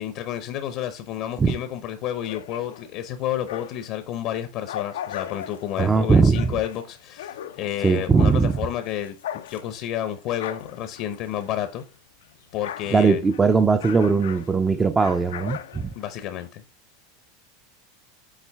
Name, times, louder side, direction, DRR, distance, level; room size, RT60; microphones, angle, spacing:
voice 1, 0.0-9.2 9.5-11.8 12.5-13.2 16.0-16.6, left 11 dB, 50° left, 0.7 m, -30 dB
sound 1, 2.1-4.0 4.3-11.9 12.2-16.5, left 11 dB, 90° left, 0.5 m, -39 dB
voice 2, 5.8-6.6 7.8-8.6 12.9-15.9, right 4 dB, 15° right, 0.5 m, -19 dB
7.3 x 3.8 x 3.4 m
supercardioid pair, 130°, 0 cm